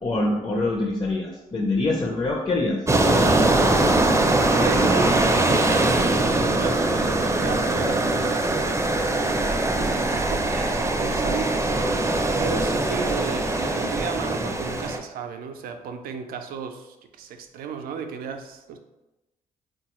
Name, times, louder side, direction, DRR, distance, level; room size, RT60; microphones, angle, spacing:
voice 1, 0.0-2.8, left 2 dB, 30° left, -2 dB, 0.6 m, -24 dB
sound 1, 2.9-15.0, right 2 dB, 20° right, 0.5 m, -22 dB
voice 2, 4.3-11.7 12.3-18.8, right 6 dB, 75° right, 6 dB, 0.4 m, -34 dB
3.8 x 2.3 x 3.0 m, 1.0 s
supercardioid pair, 55°, 15 cm